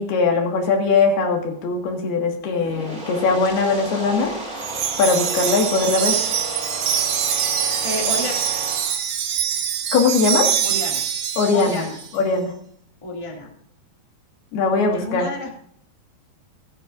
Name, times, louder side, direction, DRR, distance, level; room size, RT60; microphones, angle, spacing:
voice 1, 0.0-4.3 5.0-6.2 9.9-10.5 11.4-11.8 12.1-12.5 14.5-15.3, left 4 dB, 85° left, 1 dB, 4.0 m, -20 dB
sound 1, 2.5-8.9, right 1 dB, 10° right, 4.8 m, -33 dB
Wind chime, 4.6-12.1, right 9 dB, 70° right, 2.8 m, -24 dB
voice 2, 7.8-8.4 10.6-11.0 11.5-12.0 13.0-13.5 14.9-15.5, left 2 dB, 10° left, -1 dB, 2.1 m, -30 dB
26.5 x 9.0 x 2.7 m, 0.63 s
omnidirectional pair, 4.4 m